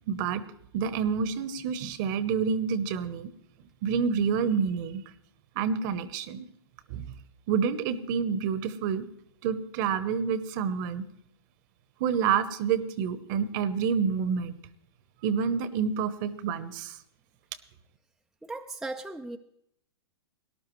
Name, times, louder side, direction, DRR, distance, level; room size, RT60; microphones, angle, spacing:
voice 1, 0.1-0.4 0.7-3.3 3.8-5.0 5.5-6.4 6.9-7.1 7.5-9.1 9.4-11.1 12.0-14.5 15.2-17.0, right 6 dB, 45° right, 14 dB, 1.0 m, -28 dB
voice 2, 18.5-19.4, right 2 dB, 5° right, 5 dB, 0.5 m, -37 dB
18.5 x 11.5 x 3.2 m, 0.72 s
hypercardioid pair, 120°, 14 cm